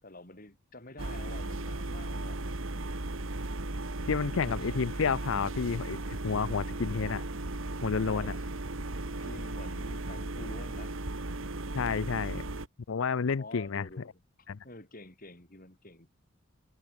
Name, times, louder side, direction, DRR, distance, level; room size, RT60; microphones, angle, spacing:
voice 1, 0.0-2.4 4.4-4.8 8.1-8.5 9.2-11.1 13.4-16.1, left 2 dB, 45° left, 5.5 m, -48 dB
sound 1, 1.0-12.7, right 2 dB, 75° right, 1.8 m, -36 dB
voice 2, 4.1-7.2 7.8-8.3 11.7-12.4 12.9-13.9 14.5-14.6, left 5 dB, 75° left, 0.5 m, -30 dB
head